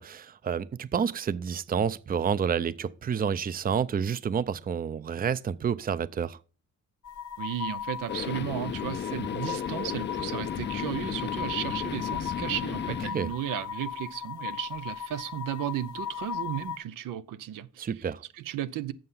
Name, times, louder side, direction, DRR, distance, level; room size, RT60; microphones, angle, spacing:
voice 1, 0.0-6.4 13.1-13.3 17.8-18.2, right 7 dB, 30° right, 0.5 m, -29 dB
sound 1, 7.0-16.8, left 8 dB, 65° left, 1.0 m, -37 dB
voice 2, 7.4-17.9 18.4-18.9, right 12 dB, 85° right, 0.6 m, -34 dB
sound 2, 8.1-13.1, left 8 dB, 35° left, 0.4 m, -34 dB
7.7 x 6.6 x 5.5 m
cardioid pair, 75°, 32 cm